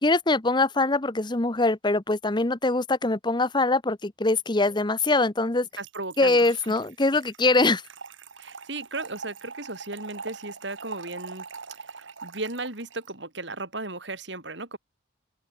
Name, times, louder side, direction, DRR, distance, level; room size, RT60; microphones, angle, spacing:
voice 1, 0.0-5.7 6.2-7.8, left 2 dB, 25° left, 1.0 m, -23 dB
voice 2, 5.8-6.8 8.4-11.4 11.7-14.8, right 2 dB, 65° right, 6.2 m, -36 dB
Trickle dribble / Fill (with liquid), 5.8-13.1, right 5 dB, 85° right, 2.0 m, -43 dB
head